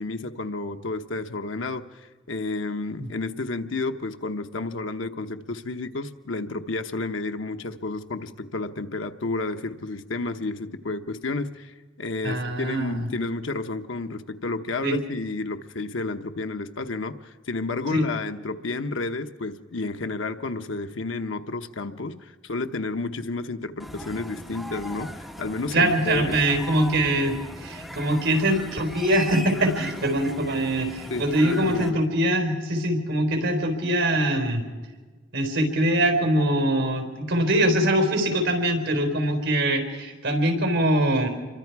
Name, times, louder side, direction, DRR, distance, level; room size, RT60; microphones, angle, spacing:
voice 1, 0.0-26.4 31.1-32.0, left 3 dB, 75° left, 7 dB, 1.0 m, -31 dB
voice 2, 12.2-13.1 14.8-15.0 17.9-18.1 25.7-34.6 35.3-41.3, right 1 dB, 70° right, 5 dB, 4.3 m, -23 dB
sound 1, 23.8-31.9, equal, ahead, 1.6 m, -38 dB
27.0 x 23.5 x 4.7 m, 1.4 s
head